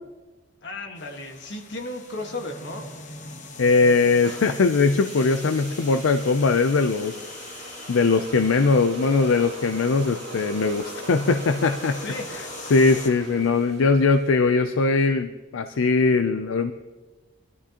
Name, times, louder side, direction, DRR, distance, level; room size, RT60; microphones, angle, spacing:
voice 1, 0.6-2.9 11.9-12.3, left 2 dB, 55° left, 3 dB, 1.5 m, -34 dB
sound 1, 0.9-13.1, left 4 dB, 40° left, 1.0 m, -43 dB
voice 2, 3.6-7.3 7.9-12.0 12.3-16.7, left 4 dB, 75° left, 8 dB, 0.5 m, -21 dB
sound 2, 4.2-14.4, right 2 dB, 55° right, 2.8 m, -41 dB
19.5 x 12.0 x 2.9 m, 1.2 s
head